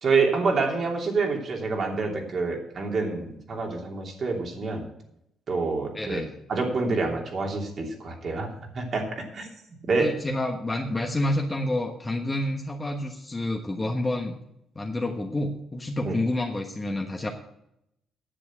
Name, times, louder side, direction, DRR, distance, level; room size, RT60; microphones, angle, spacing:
voice 1, 0.0-4.9 5.5-6.2 6.5-8.5 8.7-9.5 9.9-10.2 16.0-16.2, right 4 dB, 50° right, 1 dB, 3.0 m, -27 dB
voice 2, 5.9-6.3 10.0-14.4 14.7-17.3, left 1 dB, 20° left, 1 dB, 1.3 m, -28 dB
10.0 x 7.5 x 7.4 m, 0.80 s
cardioid pair, 90°, 0 cm